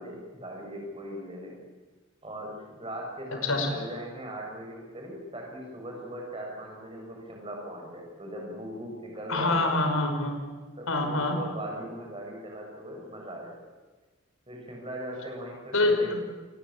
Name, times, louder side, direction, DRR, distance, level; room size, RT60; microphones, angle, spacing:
voice 1, 0.0-1.6 2.2-9.8 10.8-13.6 14.5-16.1, right 1 dB, 25° right, 0 dB, 7.0 m, -39 dB
voice 2, 3.4-3.7 9.3-10.4 10.9-11.4 15.7-16.2, left 2 dB, 80° left, 5 dB, 5.6 m, -25 dB
27.5 x 20.0 x 8.7 m, 1.3 s
head